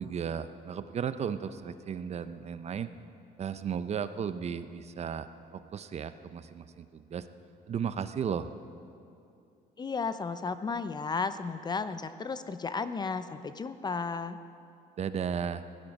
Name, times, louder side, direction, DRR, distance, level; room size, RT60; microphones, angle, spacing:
voice 1, 0.0-2.9 3.4-5.3 5.5-7.3 7.7-8.5 15.0-15.7, right 7 dB, 40° right, 12 dB, 0.6 m, -35 dB
voice 2, 9.8-14.4, left 4 dB, 25° left, 12 dB, 0.5 m, -34 dB
17.0 x 12.0 x 5.3 m, 2.6 s
cardioid pair, 110°, 17 cm